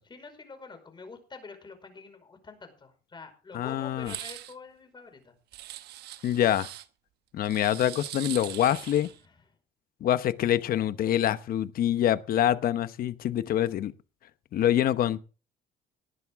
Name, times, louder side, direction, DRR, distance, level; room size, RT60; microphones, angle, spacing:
voice 1, 0.1-5.3 9.0-9.4, left 4 dB, 25° left, 5.1 m, -46 dB
voice 2, 3.5-4.1 6.2-6.7 7.3-9.1 10.0-13.9 14.5-15.2, left 11 dB, 60° left, 1.0 m, -25 dB
sound 1, 4.0-4.5 5.5-6.9 7.5-9.2, right 14 dB, 75° right, 1.1 m, -41 dB
18.5 x 11.0 x 3.6 m
cardioid pair, 110°, 17 cm